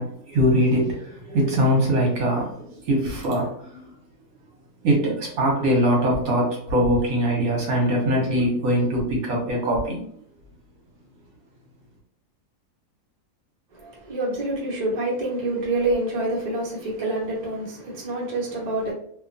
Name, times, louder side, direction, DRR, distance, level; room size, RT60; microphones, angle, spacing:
voice 1, 0.0-3.9 4.8-10.0, equal, 70° right, 1.2 m, -22 dB
voice 2, 13.7-18.9, right 2 dB, 35° right, 0.9 m, -27 dB
2.8 x 2.3 x 2.5 m
omnidirectional pair, 1.6 m